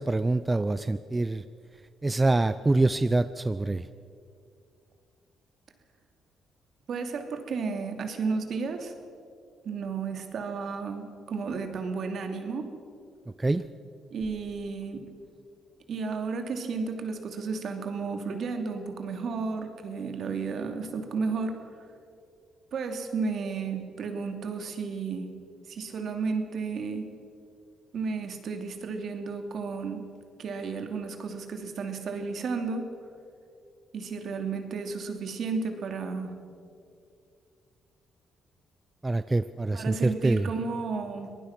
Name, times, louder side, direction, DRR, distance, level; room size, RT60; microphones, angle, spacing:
voice 1, 0.0-1.4 2.0-3.8 13.4-13.6 39.0-40.5, right 2 dB, 20° right, 13 dB, 0.6 m, -25 dB
voice 2, 6.9-8.9 9.6-12.7 14.1-15.0 15.9-21.6 22.7-25.3 25.7-27.1 27.9-30.1 30.4-32.9 33.9-36.3 39.7-41.3, right 4 dB, 60° right, 5 dB, 2.8 m, -33 dB
24.5 x 19.0 x 6.0 m, 2.4 s
cardioid pair, 90°, 0 cm